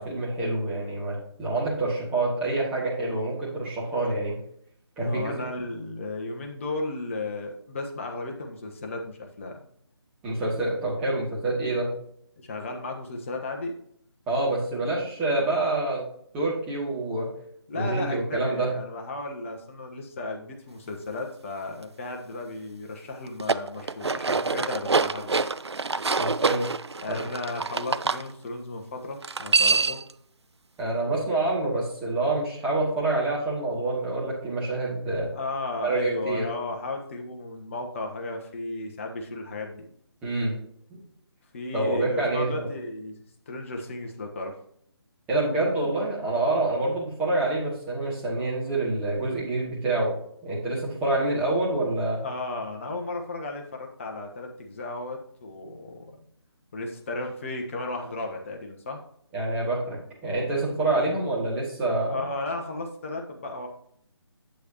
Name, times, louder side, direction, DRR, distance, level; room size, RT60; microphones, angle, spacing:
voice 1, 0.0-4.4 5.0-5.3 10.2-11.9 14.3-16.0 16.3-17.3 17.7-18.7 26.2-26.7 27.1-27.2 30.8-35.3 35.8-36.5 40.2-40.6 41.7-42.7 45.3-52.2 59.3-60.0 60.2-62.2, right 2 dB, 10° right, -7 dB, 2.1 m, -27 dB
voice 2, 5.0-9.6 12.4-13.7 17.7-25.5 27.0-30.0 35.3-39.9 41.5-43.2 43.5-44.6 52.2-56.0 56.7-59.0 62.1-63.7, left 2 dB, 30° left, 2 dB, 1.1 m, -34 dB
sound 1, 23.3-28.2 29.2-30.1, right 4 dB, 75° right, 0.4 m, -26 dB
8.2 x 8.0 x 3.0 m, 0.67 s
figure-of-eight pair, 150°, 14 cm